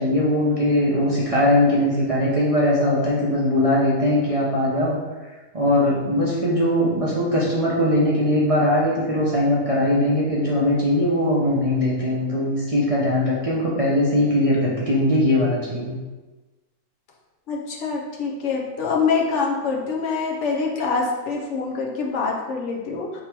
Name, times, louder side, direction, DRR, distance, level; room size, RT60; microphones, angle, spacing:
voice 1, 0.0-5.0 5.5-16.0, left 1 dB, 35° right, -7 dB, 0.6 m, -20 dB
voice 2, 17.5-23.2, left 4 dB, 65° left, -1 dB, 0.9 m, -25 dB
3.7 x 2.9 x 4.4 m, 1.2 s
omnidirectional pair, 1.4 m